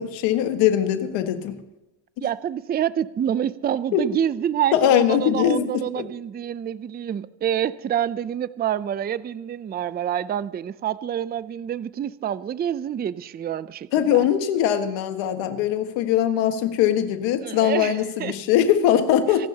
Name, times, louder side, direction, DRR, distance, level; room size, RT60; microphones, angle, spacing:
voice 1, 0.0-1.6 3.9-4.0 4.7-5.7 6.0-6.1 13.9-19.5, left 10 dB, 90° left, 1.6 m, -21 dB
voice 2, 2.2-14.3 17.4-18.4 19.4-19.5, right 10 dB, 25° right, 0.4 m, -27 dB
25.5 x 12.0 x 2.9 m
cardioid pair, 115°, 43 cm